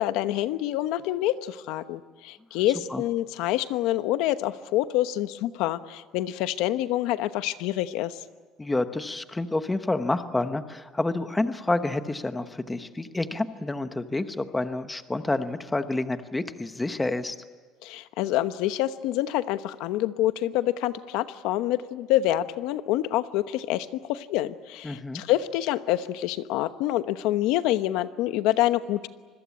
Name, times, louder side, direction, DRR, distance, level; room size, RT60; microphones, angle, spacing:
voice 1, 0.0-8.2 17.8-29.1, left 14 dB, 75° left, 12 dB, 1.0 m, -27 dB
voice 2, 8.6-17.4 24.8-25.2, left 2 dB, 10° left, 10 dB, 0.9 m, -28 dB
26.5 x 21.5 x 8.4 m, 1.4 s
cardioid pair, 165°, 0 cm